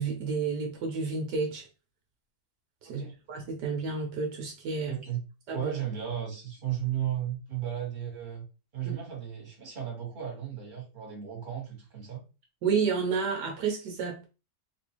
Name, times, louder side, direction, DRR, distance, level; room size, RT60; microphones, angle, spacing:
voice 1, 0.0-1.6 2.8-5.0 5.5-5.7 8.8-8.9 12.6-14.2, right 5 dB, 75° right, 1.3 m, -30 dB
voice 2, 4.7-5.2 5.5-8.4 8.7-12.2, right 10 dB, 30° right, 1.5 m, -35 dB
3.7 x 2.6 x 2.9 m
omnidirectional pair, 1.9 m